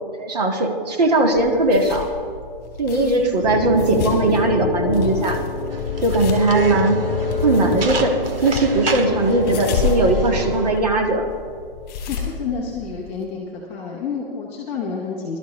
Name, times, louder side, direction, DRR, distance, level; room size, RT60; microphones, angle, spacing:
voice 1, 0.2-2.1 2.8-5.4 6.0-7.0 7.4-11.3, right 2 dB, 45° right, 3 dB, 1.7 m, -19 dB
sound 1, 1.3-13.2, left 4 dB, 25° left, 2.5 m, -31 dB
sound 2, 3.4-10.8, left 4 dB, 45° left, 1.3 m, -26 dB
sound 3, 5.7-10.7, right 3 dB, 75° right, 1.8 m, -30 dB
voice 2, 12.1-15.4, left 5 dB, 10° left, -6 dB, 0.7 m, -29 dB
20.0 x 12.5 x 3.1 m, 2.2 s
hypercardioid pair, 175°, 29 cm